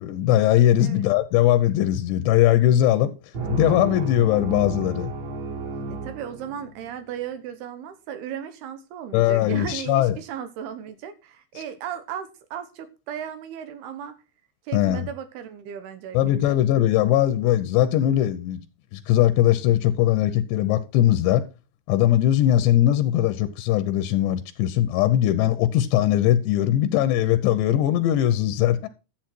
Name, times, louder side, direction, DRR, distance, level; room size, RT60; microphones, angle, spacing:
voice 1, 0.0-3.1 3.5-5.1 9.1-10.2 14.7-15.1 16.1-18.6 18.9-21.4 21.9-28.9, left 12 dB, 85° left, 3.0 m, -20 dB
sound 1, 3.3-6.9, right 3 dB, 40° right, 5.1 m, -32 dB
voice 2, 5.9-14.1 14.7-16.6, right 9 dB, 75° right, 2.9 m, -36 dB
11.5 x 8.1 x 4.5 m
omnidirectional pair, 5.0 m